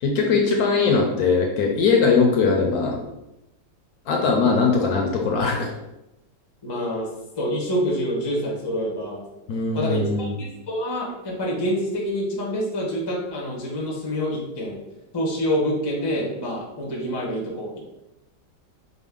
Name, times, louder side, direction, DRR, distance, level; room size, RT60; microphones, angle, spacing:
voice 1, 0.0-3.0 4.1-5.7 9.5-10.3, left 4 dB, 70° left, 1 dB, 1.0 m, -20 dB
voice 2, 6.6-7.1 7.4-9.2 9.7-14.8 15.1-17.8, equal, 35° left, -2 dB, 0.4 m, -27 dB
5.1 x 2.1 x 3.5 m, 0.93 s
omnidirectional pair, 1.9 m